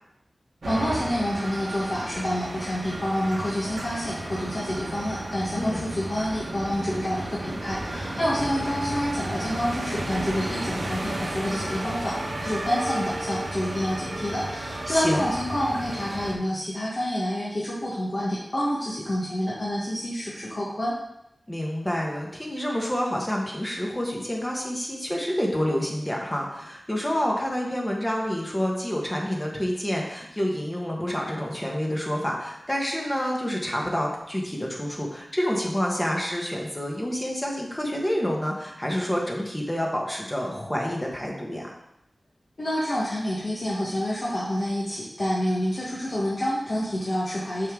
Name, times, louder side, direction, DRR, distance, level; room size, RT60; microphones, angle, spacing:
voice 1, 0.6-20.9 42.6-47.7, equal, 50° left, -7 dB, 1.4 m, -28 dB
sound 1, 0.6-16.3, right 1 dB, 90° right, 1.3 m, -33 dB
voice 2, 5.5-5.9 14.9-15.2 21.5-41.7, equal, 20° left, -1 dB, 1.4 m, -28 dB
6.4 x 5.1 x 3.8 m, 0.82 s
wide cardioid pair, 75°, 0 cm